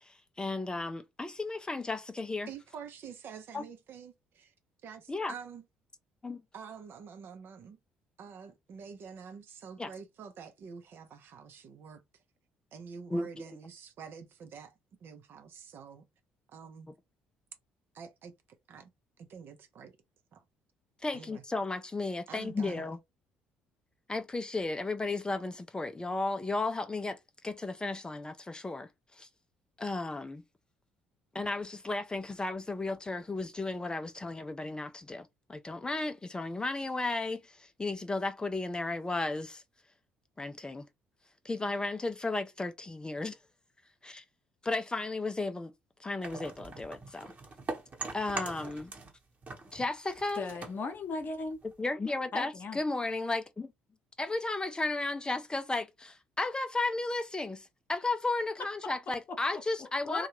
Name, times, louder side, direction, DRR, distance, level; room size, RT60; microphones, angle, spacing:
voice 1, 0.0-2.5 3.5-3.6 5.1-5.3 6.2-6.4 9.8-9.9 13.1-13.6 21.0-23.0 24.1-29.3 29.8-30.4 31.3-39.6 40.4-40.8 41.4-43.4 44.0-44.2 44.6-45.7 46.0-47.3 48.1-48.9 49.7-50.4 51.8-53.7 54.2-60.3, left 2 dB, 20° left, 0.5 m, -34 dB
voice 2, 2.5-4.5 4.8-5.6 6.5-7.8 8.2-12.0 12.7-14.7 15.0-16.0 16.5-16.9 17.9-18.3 18.7-18.9 19.3-19.9 20.3-20.4 21.1-21.4 22.3-22.9, right 6 dB, 55° right, 0.7 m, -47 dB
sound 1, 46.2-49.2 49.4-51.8, right 3 dB, 35° right, 1.1 m, -42 dB
voice 3, 50.4-51.6 52.3-52.8 60.0-60.3, left 3 dB, 45° left, 0.8 m, -37 dB
2.7 x 2.3 x 3.0 m
hypercardioid pair, 55°, 4 cm